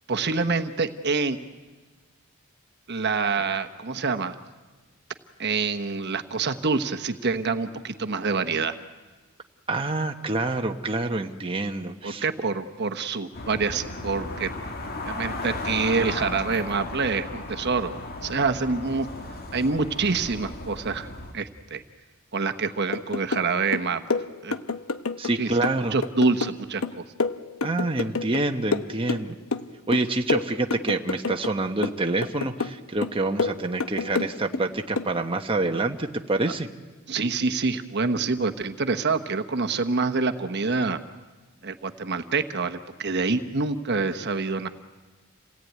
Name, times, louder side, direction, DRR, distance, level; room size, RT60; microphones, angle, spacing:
voice 1, 0.1-1.4 2.9-4.4 5.4-8.7 12.0-14.5 15.0-17.9 18.2-19.1 19.5-21.8 22.3-24.0 24.4-24.5 25.3-25.5 25.9-27.0 37.1-41.0 41.6-44.7, right 4 dB, 50° right, 8 dB, 1.1 m, -26 dB
voice 2, 9.7-12.3 25.2-25.9 27.6-29.4 29.9-36.7, right 2 dB, 25° right, 4 dB, 1.0 m, -27 dB
sound 1, 13.3-21.3, left 2 dB, 45° left, 2.0 m, -35 dB
sound 2, 22.9-23.5 23.7-25.3 25.6-28.4 28.7-29.7 29.9-31.5 31.8-32.8 33.0-34.6 35.0-35.1, left 4 dB, 75° left, 0.9 m, -28 dB
28.0 x 18.0 x 9.4 m, 1.3 s
head